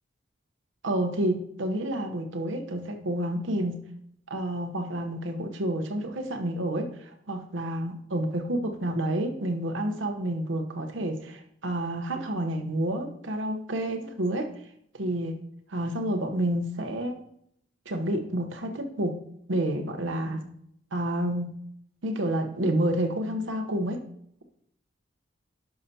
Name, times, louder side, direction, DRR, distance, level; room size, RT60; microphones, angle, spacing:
voice 1, 0.8-3.8 4.3-14.5 14.9-15.4 15.7-17.2 17.9-19.2 19.5-20.5 20.9-21.6 22.0-24.0, right 1 dB, 80° right, 5 dB, 0.9 m, -29 dB
10.5 x 5.8 x 2.8 m, 0.71 s
head